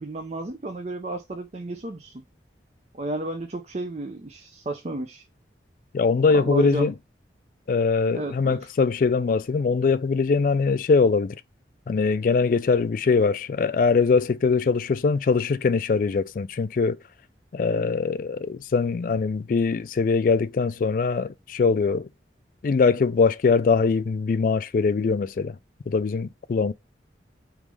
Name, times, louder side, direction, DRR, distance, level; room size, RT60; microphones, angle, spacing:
voice 1, 0.0-2.2 2.9-5.2 6.3-6.9 8.1-8.7, right 2 dB, 40° right, 0.5 m, -32 dB
voice 2, 5.9-6.9 7.7-11.4 11.9-17.0 17.5-22.1 22.6-25.6 25.9-26.7, left 4 dB, 50° left, 0.3 m, -22 dB
3.6 x 3.1 x 4.7 m
head